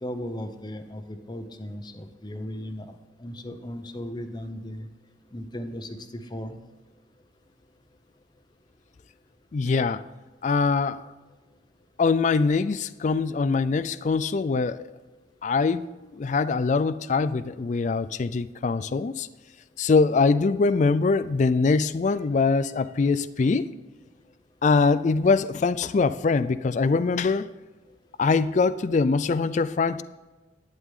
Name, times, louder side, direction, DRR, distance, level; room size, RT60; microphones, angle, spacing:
voice 1, 0.0-4.9 5.3-6.6, equal, 25° left, 8 dB, 0.9 m, -36 dB
voice 2, 9.5-10.0 10.4-11.0 12.0-14.9 15.4-15.9 16.1-19.3 19.8-23.7 24.6-27.5 28.2-30.0, left 4 dB, 40° left, 15 dB, 0.3 m, -23 dB
11.5 x 9.9 x 3.7 m, 1.2 s
head